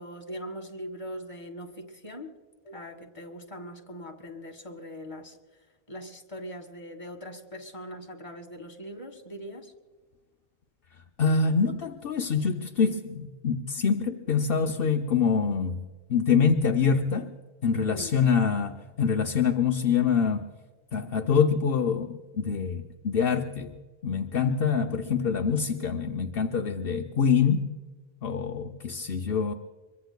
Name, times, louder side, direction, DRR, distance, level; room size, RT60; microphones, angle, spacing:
voice 1, 0.0-2.3 2.6-5.4 5.9-9.7 17.8-18.2, equal, 30° left, 3 dB, 1.6 m, -41 dB
voice 2, 11.2-15.8 16.1-17.3 17.6-20.5 20.9-23.7 24.0-27.7 28.2-29.5, left 6 dB, 70° left, 4 dB, 0.9 m, -25 dB
25.0 x 22.5 x 2.2 m, 1.3 s
omnidirectional pair, 1.1 m